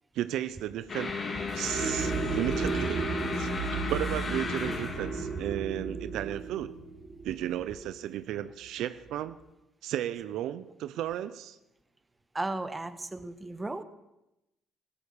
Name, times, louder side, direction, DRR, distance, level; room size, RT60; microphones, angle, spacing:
voice 1, 0.1-1.1 1.5-3.1 3.3-3.5 3.9-6.7 7.2-9.4 9.8-11.6, right 12 dB, 75° right, 14 dB, 0.6 m, -34 dB
sound 1, 0.9-7.3, left 3 dB, 40° left, 3.1 m, -35 dB
sound 2, 1.7-8.2, right 6 dB, 45° right, 1.1 m, -35 dB
voice 2, 12.3-13.8, right 2 dB, 15° right, 12 dB, 1.3 m, -35 dB
15.5 x 12.5 x 6.6 m, 0.93 s
supercardioid pair, 75°, 0 cm